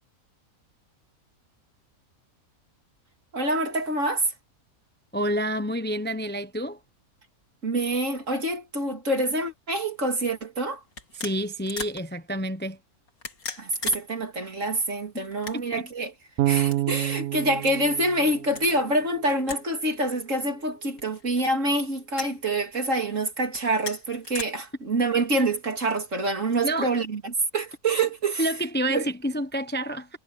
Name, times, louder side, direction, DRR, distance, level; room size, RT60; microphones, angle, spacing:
voice 1, 3.3-4.3 7.6-10.8 13.6-16.1 16.4-28.5 28.9-29.1, right 2 dB, 60° right, 3.3 m, -26 dB
voice 2, 5.1-6.8 11.2-12.8 15.1-15.3 15.5-15.9 26.6-26.9 28.4-30.1, right 1 dB, 10° left, 0.8 m, -28 dB
sound 1, 9.8-10.0 10.9-12.0 13.1-14.0 14.3-14.4 15.2-15.9 16.6-16.8 17.6-17.8 18.5-18.8 19.5-19.7 19.9-20.0 21.0-21.5 22.1-22.4 23.5-24.4, left 3 dB, 80° left, 3.4 m, -37 dB
Bass guitar, 16.4-19.4, right 14 dB, 75° right, 1.0 m, -28 dB
omnidirectional pair, 1.5 m